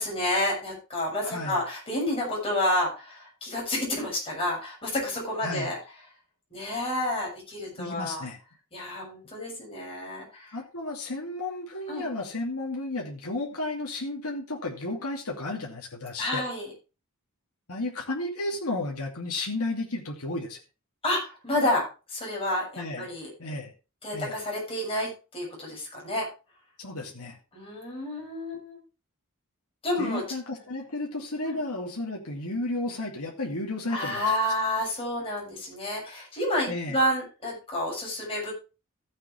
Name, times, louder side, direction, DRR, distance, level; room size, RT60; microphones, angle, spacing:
voice 1, 0.0-5.8 6.5-8.2 8.7-10.6 11.9-12.1 16.2-16.7 21.0-23.3 24.0-26.3 27.5-28.8 29.8-30.2 31.4-31.6 33.9-38.5, left 1 dB, 25° left, -3 dB, 7.0 m, -30 dB
voice 2, 1.2-1.6 5.4-5.7 7.8-8.4 10.5-16.4 17.7-20.6 22.8-23.1 23.4-23.7 24.1-24.4 26.8-27.4 30.0-34.3 36.7-37.0, left 2 dB, 85° left, -1 dB, 2.6 m, -33 dB
15.0 x 7.5 x 3.4 m, 0.31 s
head